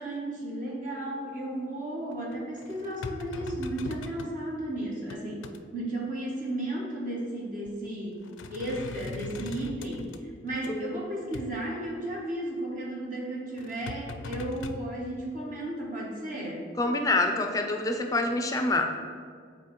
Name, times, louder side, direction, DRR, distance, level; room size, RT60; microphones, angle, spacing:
voice 1, 0.0-5.5 5.7-8.2 8.5-16.7, right 1 dB, 40° right, -3 dB, 0.9 m, -34 dB
sound 1, 2.1-4.3 4.8-5.6 7.1-7.2 7.7-7.9 8.2-10.7 11.3-11.5 13.6-14.8, left 3 dB, 80° left, 0.4 m, -40 dB
voice 2, 10.7-11.0 16.8-18.9, left 2 dB, 20° left, 5 dB, 0.4 m, -26 dB
8.5 x 4.0 x 3.0 m, 2.1 s
head